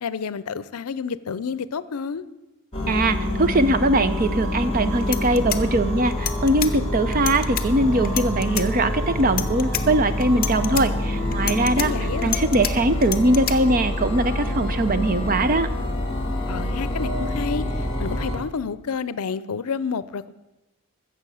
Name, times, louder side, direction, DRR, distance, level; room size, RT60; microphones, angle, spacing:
voice 1, 0.0-2.2 11.4-12.4 16.5-20.3, left 5 dB, 80° left, 17 dB, 0.5 m, -30 dB
sound 1, 2.7-18.4, left 1 dB, 25° left, 2.0 m, -26 dB
voice 2, 2.9-11.9 12.2-15.7, right 1 dB, 40° right, 12 dB, 0.6 m, -21 dB
sound 2, 4.7-4.8 5.0-6.7 7.1-7.6 8.0-8.7 9.2-9.8 10.2-10.8 11.3-12.7 13.0-13.5, left 12 dB, 40° left, 0.7 m, -28 dB
15.0 x 6.9 x 6.3 m, 1.0 s
head